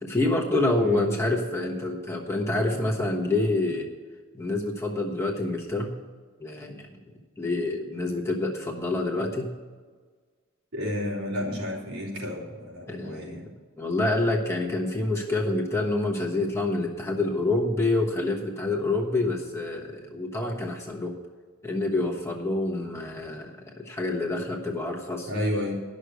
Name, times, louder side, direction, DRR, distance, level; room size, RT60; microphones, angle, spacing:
voice 1, 0.0-3.9 4.3-6.0 6.4-6.9 7.4-9.5 12.9-13.4 13.8-21.2 21.6-25.3, left 2 dB, 15° left, 0 dB, 1.2 m, -27 dB
voice 2, 10.7-13.4 25.3-25.8, left 1 dB, 80° right, -3 dB, 3.4 m, -31 dB
11.0 x 6.4 x 8.0 m, 1.5 s
head